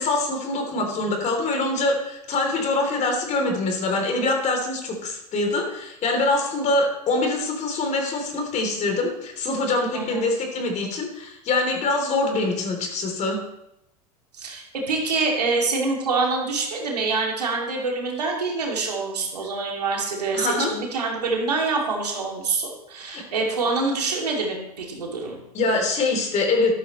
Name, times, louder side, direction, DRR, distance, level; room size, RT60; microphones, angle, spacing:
voice 1, 0.0-13.4 20.3-20.7 23.0-23.2 25.5-26.7, left 2 dB, 35° left, 2 dB, 3.3 m, -24 dB
voice 2, 9.9-10.3 14.3-25.4, right 3 dB, 80° right, 0 dB, 2.7 m, -26 dB
13.0 x 12.5 x 3.2 m, 0.81 s
figure-of-eight pair, 85°, 20 cm